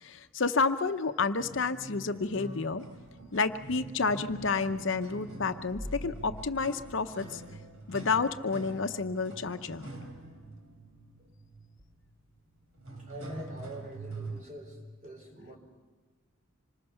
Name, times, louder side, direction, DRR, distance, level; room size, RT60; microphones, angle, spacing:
voice 1, 0.0-2.8 3.3-7.4 7.9-9.9, left 4 dB, 65° left, 9 dB, 0.7 m, -30 dB
sound 1, 1.4-14.4, right 2 dB, 85° right, 3.6 m, -45 dB
sound 2, 2.8-4.1 5.6-8.2 8.7-8.8 11.8-11.9, left 1 dB, 15° right, 2.6 m, -46 dB
voice 2, 13.0-15.6, equal, 35° right, 2 dB, 4.1 m, -44 dB
26.0 x 20.0 x 5.7 m, 1.4 s
head